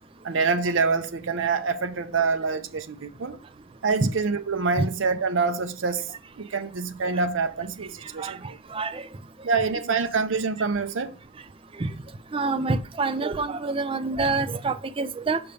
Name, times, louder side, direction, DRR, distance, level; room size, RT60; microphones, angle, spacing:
voice 1, 0.2-3.4 3.8-6.1 6.4-8.6 9.4-11.1, right 4 dB, 75° right, 0.6 m, -26 dB
voice 2, 8.7-9.1 11.8-11.9 12.3-15.4, right 3 dB, 30° right, 0.4 m, -26 dB
6.8 x 5.5 x 3.3 m
head